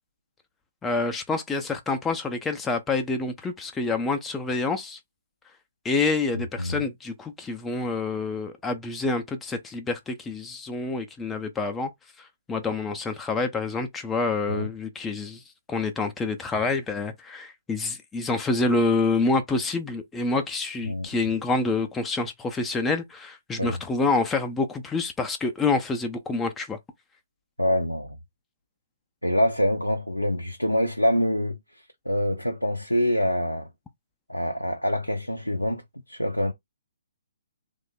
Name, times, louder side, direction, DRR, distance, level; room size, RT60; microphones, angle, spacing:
voice 1, 0.8-5.0 5.8-11.9 12.2-15.4 15.7-26.8, left 3 dB, 10° left, 0.4 m, -27 dB
voice 2, 6.3-6.8 14.5-14.7 20.8-21.1 23.6-23.8 27.6-28.2 29.2-31.6 32.1-33.7 34.3-35.8 36.1-36.5, equal, 85° left, 0.5 m, -25 dB
3.0 x 2.0 x 3.6 m
figure-of-eight pair, 125°, 0 cm